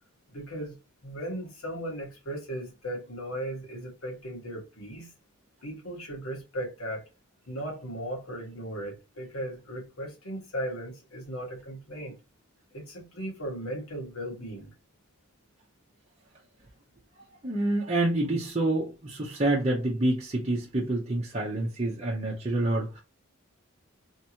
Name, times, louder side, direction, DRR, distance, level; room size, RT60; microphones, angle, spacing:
voice 1, 0.3-0.8 1.0-5.1 5.6-7.0 7.5-12.1 12.7-14.7, right 1 dB, 80° left, 1.8 m, -37 dB
voice 2, 17.4-23.0, right 2 dB, 30° right, 0.8 m, -27 dB
3.5 x 3.0 x 2.8 m
head